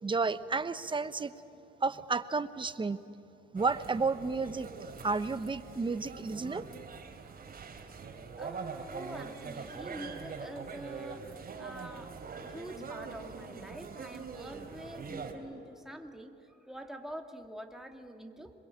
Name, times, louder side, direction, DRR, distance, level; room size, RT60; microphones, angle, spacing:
voice 1, 0.0-1.3 1.8-3.0 3.5-4.7 5.0-6.7, right 4 dB, 25° right, 12 dB, 1.1 m, -31 dB
sound 1, 3.6-15.3, right 5 dB, 50° right, 3.5 m, -43 dB
voice 2, 8.2-12.1 12.4-18.5, right 1 dB, ahead, 3 dB, 2.3 m, -46 dB
26.5 x 22.0 x 8.9 m, 2.9 s
cardioid pair, 90°, 20 cm